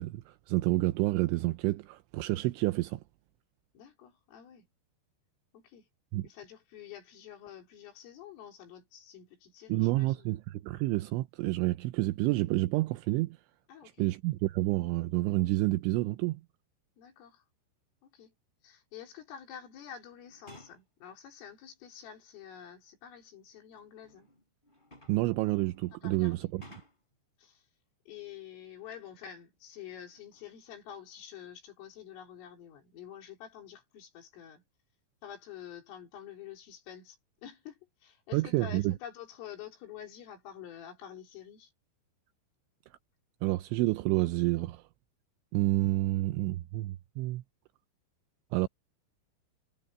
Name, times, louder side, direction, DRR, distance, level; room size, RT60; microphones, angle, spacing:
voice 1, 0.0-3.0 6.1-6.3 9.7-13.4 14.0-16.4 25.1-26.6 38.3-38.9 43.4-44.8 45.5-47.4 48.5-48.7, right 19 dB, 85° right, 2.8 m, -29 dB
voice 2, 3.7-4.7 5.5-5.9 6.2-10.3 13.7-14.1 17.0-17.4 18.0-18.3 18.6-24.3 25.9-26.5 27.4-27.7 28.1-34.6 35.2-41.7, left 9 dB, 75° left, 6.4 m, -48 dB
sound 1, 20.2-20.9 22.1-22.2 23.4-27.2 29.0-29.5 29.9-30.6 31.2-31.4, left 1 dB, 10° left, 3.5 m, -58 dB
omnidirectional pair, 6.0 m